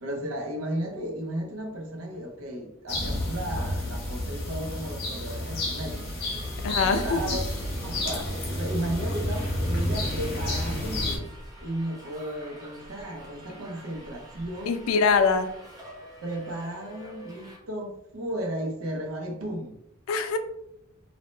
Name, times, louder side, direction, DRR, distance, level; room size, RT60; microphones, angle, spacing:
voice 1, 0.0-6.5 6.8-7.4 7.8-11.3 11.6-14.8 16.2-19.8, right 1 dB, 85° right, 2 dB, 0.7 m, -34 dB
sound 1, 2.9-11.2, left 1 dB, 50° left, 0.9 m, -30 dB
Subway metro underground, 5.9-17.6, equal, 20° right, 0.6 m, -47 dB
voice 2, 6.6-7.2 14.7-15.5 20.1-20.4, left 5 dB, 75° left, 9 dB, 0.3 m, -23 dB
2.7 x 2.1 x 3.0 m, 0.78 s
head